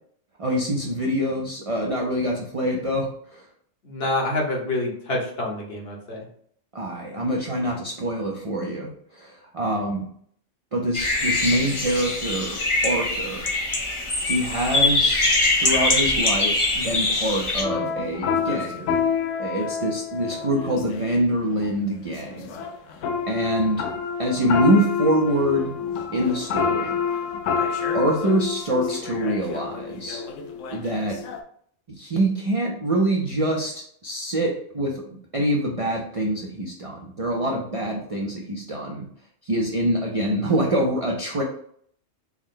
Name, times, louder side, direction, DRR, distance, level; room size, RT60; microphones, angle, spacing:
voice 1, 0.4-3.5 6.7-10.1 10.7-13.4 14.3-15.2 15.6-18.9 19.4-22.6 23.3-23.8 24.2-25.7 26.1-27.0 27.9-30.2 30.7-31.2 32.0-39.1 39.4-41.4, right 1 dB, 45° right, -2 dB, 0.4 m, -25 dB
voice 2, 3.8-6.2, left 2 dB, 55° left, -2 dB, 1.2 m, -27 dB
sound 1, 10.9-17.6, left 2 dB, 30° left, 0.6 m, -23 dB
sound 2, 17.6-21.2 21.6-21.7 22.1-31.4, left 6 dB, 85° left, 0.9 m, -28 dB
4.6 x 2.1 x 3.7 m, 0.63 s
omnidirectional pair, 1.3 m